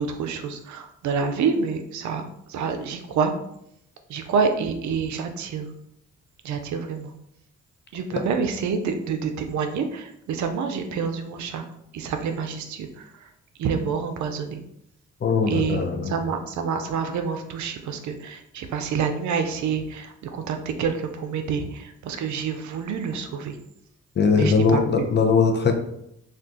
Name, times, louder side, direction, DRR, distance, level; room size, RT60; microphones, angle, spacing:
voice 1, 0.0-3.3 4.1-5.7 6.4-7.1 7.9-11.6 11.9-13.1 13.6-14.6 15.5-23.6 24.3-25.1, right 6 dB, 75° right, 6 dB, 0.5 m, -27 dB
voice 2, 15.2-16.2 24.2-25.7, left 5 dB, 35° left, 4 dB, 0.6 m, -20 dB
2.4 x 2.3 x 3.8 m, 0.76 s
cardioid pair, 65°, 30 cm